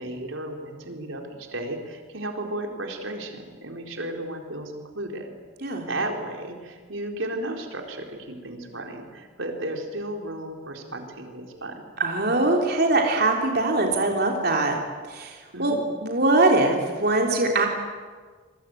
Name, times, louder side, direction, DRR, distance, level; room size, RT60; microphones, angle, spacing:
voice 1, 0.0-5.3 5.9-11.9 15.5-15.8, right 1 dB, 85° right, 2 dB, 4.3 m, -34 dB
voice 2, 12.0-14.8 15.1-15.8 16.0-17.7, right 2 dB, 50° right, 1 dB, 3.4 m, -22 dB
28.0 x 22.5 x 9.3 m, 1.5 s
head